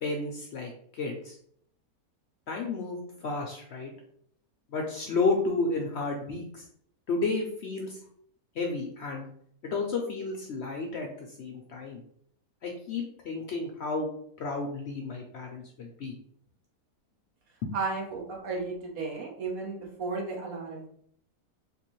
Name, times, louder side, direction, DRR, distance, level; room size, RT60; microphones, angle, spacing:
voice 1, 0.0-1.4 2.5-3.9 4.7-6.6 7.1-8.0 8.5-9.2 9.6-12.0 12.6-14.1 14.4-16.1 17.6-17.7, left 3 dB, 65° left, 1 dB, 0.7 m, -32 dB
voice 2, 17.7-20.9, right 4 dB, 70° right, -1 dB, 1.4 m, -34 dB
3.5 x 3.0 x 3.0 m, 0.65 s
omnidirectional pair, 1.6 m